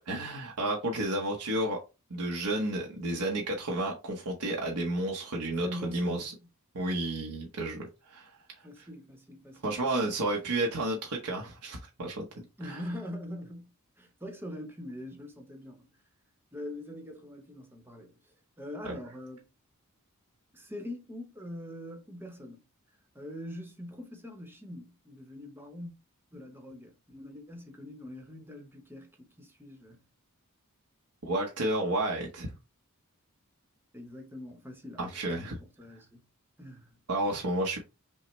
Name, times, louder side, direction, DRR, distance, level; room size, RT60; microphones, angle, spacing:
voice 1, 0.1-1.8 2.1-6.3 6.7-8.3 8.8-8.9 9.6-12.3 12.7-12.8 18.8-18.9 31.2-32.5 35.0-35.6 37.1-37.8, right 1 dB, 90° right, 0.9 m, -31 dB
voice 2, 5.5-6.5 8.6-10.1 12.6-13.7 14.0-15.9 16.5-18.1 18.6-19.5 20.5-22.6 23.1-25.9 26.3-30.0 33.9-36.2 36.6-37.0 37.3-37.4, left 1 dB, 10° right, 0.9 m, -43 dB
5.5 x 2.1 x 3.1 m
head